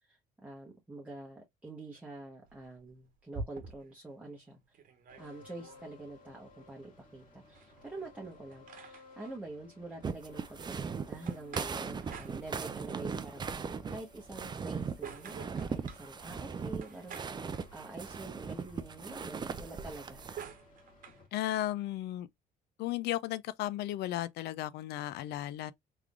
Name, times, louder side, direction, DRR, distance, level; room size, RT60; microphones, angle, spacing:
voice 1, 0.0-4.6 5.2-20.2, right 2 dB, 10° right, 1.0 m, -46 dB
sound 1, 2.5-4.0 4.5-4.6 4.7-5.8 7.5-9.3 11.3-12.9 14.3-16.1 16.8-18.2 19.7-21.2, right 5 dB, 55° right, 1.1 m, -48 dB
sound 2, 5.1-21.3, left 3 dB, 50° left, 1.9 m, -58 dB
sound 3, 10.0-20.4, right 5 dB, 25° right, 0.5 m, -38 dB
voice 2, 21.3-22.3 22.8-25.7, left 14 dB, 75° left, 0.4 m, -35 dB
3.6 x 3.3 x 2.3 m
cardioid pair, 110°, 17 cm